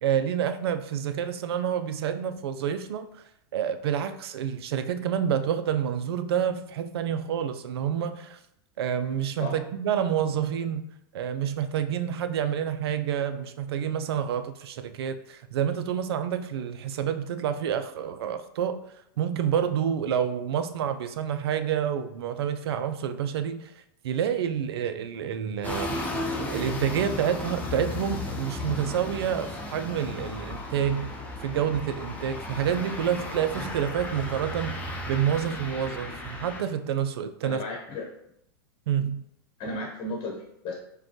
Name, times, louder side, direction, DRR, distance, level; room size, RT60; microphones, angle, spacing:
voice 1, 0.0-3.2 3.5-8.4 8.8-10.9 11.1-18.8 19.2-23.7 24.0-26.0 26.5-31.1 31.4-34.8 35.1-37.6 38.9-39.2, right 9 dB, 80° right, 9 dB, 0.4 m, -28 dB
sound 1, 25.6-36.6, left 2 dB, 10° left, 0.6 m, -35 dB
voice 2, 37.4-38.1 39.6-40.7, left 2 dB, 40° left, -1 dB, 1.0 m, -34 dB
5.1 x 2.2 x 3.0 m, 0.76 s
hypercardioid pair, 120°, 13 cm